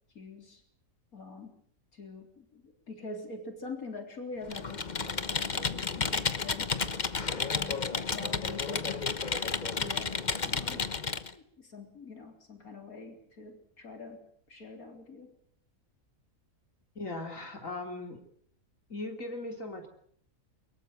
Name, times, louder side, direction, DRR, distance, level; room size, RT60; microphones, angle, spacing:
voice 1, 0.1-0.6 1.1-1.6 1.9-6.8 7.4-9.1 9.8-10.1 10.4-10.8 11.3-15.3, left 3 dB, 80° left, 5 dB, 4.3 m, -45 dB
Computer keyboard, 4.5-11.3, left 5 dB, 35° left, 1.1 m, -32 dB
voice 2, 17.0-18.2 18.9-19.9, left 2 dB, 65° left, 4 dB, 3.8 m, -38 dB
23.5 x 21.5 x 8.1 m, 0.63 s
omnidirectional pair, 1.5 m